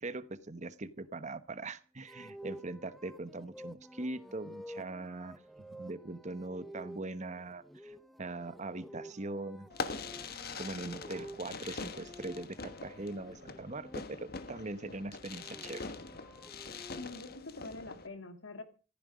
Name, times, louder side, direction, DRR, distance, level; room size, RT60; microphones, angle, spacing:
voice 1, 0.0-9.9 10.3-15.9, right 2 dB, 35° right, 14 dB, 1.0 m, -41 dB
sound 1, 2.1-14.0 15.1-17.3, equal, ahead, 0.8 m, -51 dB
Fireworks, 9.7-18.1, left 4 dB, 50° left, 1.4 m, -43 dB
voice 2, 17.0-18.6, left 2 dB, 70° left, 9 dB, 2.3 m, -45 dB
15.0 x 14.5 x 5.1 m, 0.36 s
head